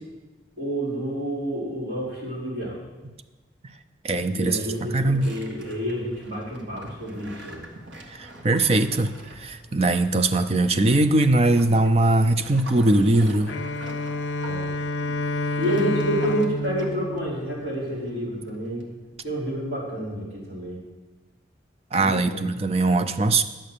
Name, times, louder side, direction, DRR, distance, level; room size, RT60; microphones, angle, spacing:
voice 1, 0.6-2.8 4.3-7.6 14.4-14.7 15.6-18.8 19.2-20.8 22.0-22.5, equal, 60° right, -6 dB, 4.8 m, -29 dB
voice 2, 4.0-4.6 4.9-5.3 8.1-13.6 21.9-23.4, right 2 dB, 35° right, 10 dB, 0.5 m, -21 dB
sound 1, 4.6-18.8, right 1 dB, 85° right, 1.6 m, -44 dB
Bowed string instrument, 13.5-18.2, left 2 dB, 85° left, 0.5 m, -29 dB
10.5 x 7.6 x 6.7 m, 1.2 s
head